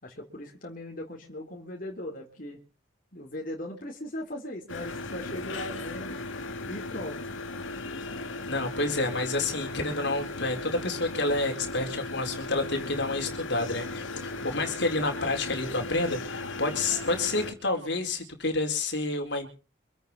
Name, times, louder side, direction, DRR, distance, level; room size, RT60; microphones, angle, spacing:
voice 1, 0.0-2.6 3.1-7.3 14.4-14.6, left 1 dB, 45° left, -1 dB, 3.8 m, -39 dB
sound 1, 4.7-17.5, left 2 dB, 80° left, 2.4 m, -37 dB
voice 2, 8.5-19.5, left 2 dB, 60° left, 4 dB, 4.4 m, -29 dB
26.0 x 9.1 x 5.5 m, 0.37 s
head